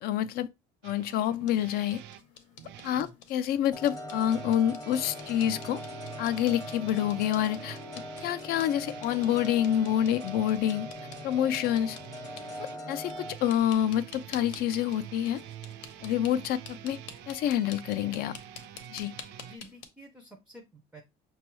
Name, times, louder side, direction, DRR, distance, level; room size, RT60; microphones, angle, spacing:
voice 1, 0.0-0.5 0.8-2.0 2.8-5.8 6.2-7.8 8.2-10.9 11.2-12.0 12.6-15.4 16.0-17.0 17.3-18.3 18.9-19.1, left 11 dB, 60° left, 0.4 m, -27 dB
sound 1, 0.8-3.1 4.1-19.6, right 11 dB, 70° right, 0.4 m, -47 dB
sound 2, 1.1-19.9, left 7 dB, 90° left, 0.8 m, -51 dB
sound 3, 3.7-13.3, left 1 dB, 20° left, 0.7 m, -42 dB
voice 2, 19.4-21.0, right 1 dB, 5° right, 0.4 m, -50 dB
6.0 x 2.3 x 3.0 m
cardioid pair, 155°, 18 cm